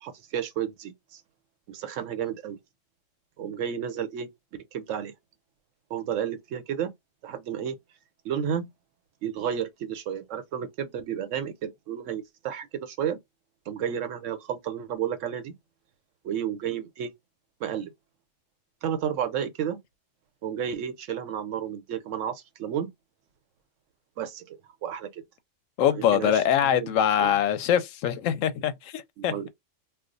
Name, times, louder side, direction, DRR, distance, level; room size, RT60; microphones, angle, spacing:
voice 1, 0.0-1.2 1.7-2.6 3.4-4.3 4.7-5.1 5.9-6.9 7.2-7.8 8.2-8.7 9.2-13.2 13.7-15.5 16.2-17.1 17.6-17.9 18.8-19.8 20.4-22.9 24.2-25.2 26.0-27.3 29.2-29.5, right 9 dB, 75° right, 1.0 m, -32 dB
voice 2, 25.8-29.5, left 9 dB, 85° left, 1.0 m, -24 dB
2.4 x 2.3 x 3.8 m
omnidirectional pair, 1.3 m